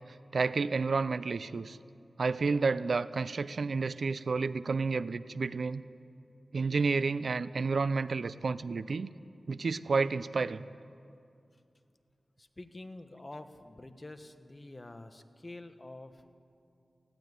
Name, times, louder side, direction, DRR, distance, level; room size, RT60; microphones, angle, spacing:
voice 1, 0.3-1.8 2.2-5.8 6.5-9.1 9.5-10.6, right 4 dB, 70° right, 16 dB, 0.5 m, -30 dB
voice 2, 12.4-16.3, left 2 dB, 30° left, 9 dB, 1.2 m, -47 dB
19.5 x 16.0 x 9.5 m, 2.5 s
wide cardioid pair, 85°, 0 cm